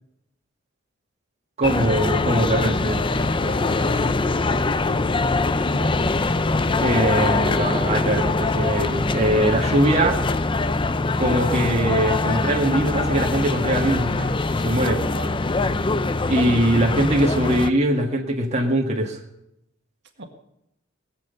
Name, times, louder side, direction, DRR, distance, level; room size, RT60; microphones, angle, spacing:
sound 1, 1.6-17.7, left 3 dB, 25° left, 0.5 m, -23 dB
voice 1, 1.6-3.1 6.8-10.2 11.2-15.0 16.3-19.2, right 1 dB, 35° right, 0 dB, 1.7 m, -22 dB
voice 2, 3.4-4.2 5.6-6.0 15.0-15.4 20.2-20.3, right 2 dB, 60° right, 4 dB, 1.8 m, -36 dB
19.5 x 7.7 x 8.0 m, 0.84 s
head